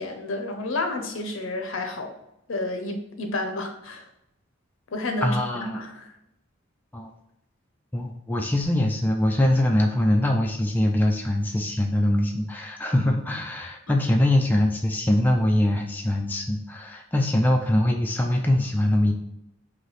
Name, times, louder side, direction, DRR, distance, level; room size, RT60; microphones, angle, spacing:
voice 1, 0.0-2.1 2.5-4.1 4.9-6.1 13.9-14.0, left 2 dB, 65° left, 5 dB, 0.7 m, -30 dB
voice 2, 5.2-5.9 6.9-7.1 7.9-19.2, left 1 dB, 10° left, 1 dB, 0.3 m, -23 dB
4.0 x 2.8 x 3.2 m, 0.83 s
head